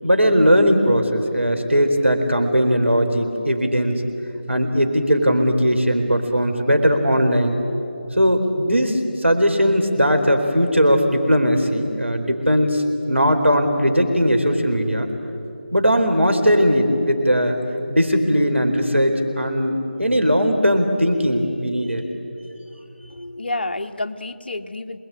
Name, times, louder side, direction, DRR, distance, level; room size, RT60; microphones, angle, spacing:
voice 1, 0.0-4.0 4.5-7.6 8.2-12.8 13.1-15.1 15.7-17.6 17.9-22.0, equal, 85° right, 4 dB, 4.0 m, -18 dB
voice 2, 23.1-25.0, left 2 dB, 55° left, 7 dB, 1.2 m, -29 dB
28.0 x 20.5 x 8.8 m, 2.9 s
figure-of-eight pair, 160°, 6 cm